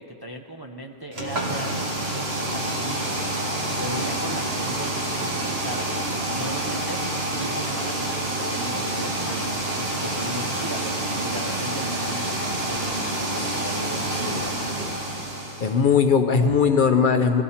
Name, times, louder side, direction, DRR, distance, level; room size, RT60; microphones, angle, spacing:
voice 1, 0.0-15.2, right 1 dB, 25° right, 2 dB, 0.6 m, -38 dB
sound 1, 1.1-15.8, right 1 dB, 60° right, 2.2 m, -27 dB
voice 2, 15.6-17.4, left 6 dB, 50° left, 6 dB, 0.8 m, -19 dB
20.5 x 15.0 x 4.3 m, 2.8 s
omnidirectional pair, 1.2 m